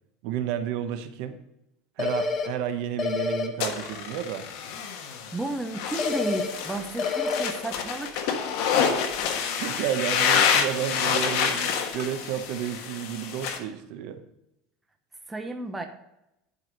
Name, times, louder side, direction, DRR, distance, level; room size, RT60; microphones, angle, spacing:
voice 1, 0.2-1.4 2.0-4.4 9.6-14.2, right 10 dB, 55° right, 9 dB, 0.8 m, -31 dB
sound 1, 2.0-2.5 3.0-3.5 6.0-6.5 7.0-7.5, left 5 dB, 25° left, 1.0 m, -27 dB
sound 2, 3.6-13.6, left 7 dB, 60° left, 1.3 m, -27 dB
voice 2, 5.3-8.2 15.3-15.9, right 2 dB, 5° right, 4 dB, 0.7 m, -32 dB
11.0 x 4.8 x 5.3 m, 0.86 s
cardioid pair, 170°, 0 cm